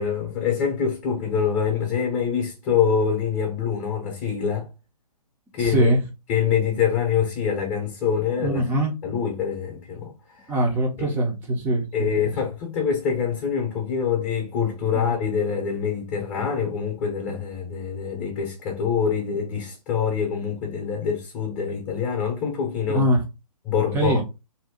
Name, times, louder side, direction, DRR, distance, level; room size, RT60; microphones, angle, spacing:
voice 1, 0.0-4.7 5.5-5.9 6.3-8.6 9.0-10.5 11.0-11.1 11.9-23.1 23.6-24.2, left 7 dB, 20° left, 0.8 m, -25 dB
voice 2, 5.6-6.0 8.4-8.9 10.5-12.1 14.9-15.0 22.9-23.2 23.9-24.2, right 1 dB, 10° right, 0.6 m, -22 dB
2.7 x 2.2 x 3.5 m
hypercardioid pair, 145°, 20 cm